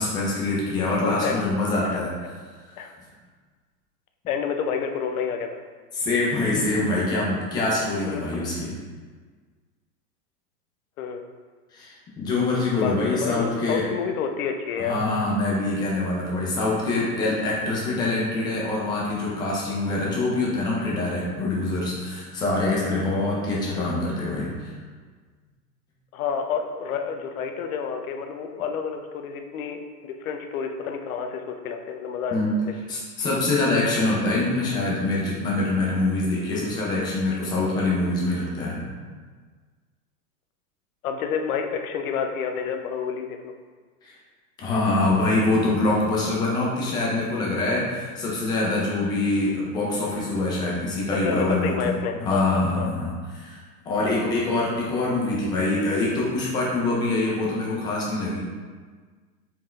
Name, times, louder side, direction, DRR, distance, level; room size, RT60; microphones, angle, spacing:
voice 1, 0.0-2.1 2.7-2.8 5.9-8.7 11.7-13.8 14.8-24.7 32.3-32.5 32.9-38.8 44.0-44.1 44.6-51.9 52.2-53.6 53.9-58.5, left 2 dB, 10° left, -5 dB, 0.4 m, -25 dB
voice 2, 1.0-1.4 1.8-2.1 2.8-2.9 4.3-5.6 8.0-8.4 11.0-11.3 12.7-14.9 23.8-24.0 26.1-32.7 33.2-33.3 41.0-43.5 51.2-52.9, left 6 dB, 60° left, 5 dB, 0.7 m, -29 dB
4.7 x 3.6 x 3.2 m, 1.5 s
hypercardioid pair, 125°, 48 cm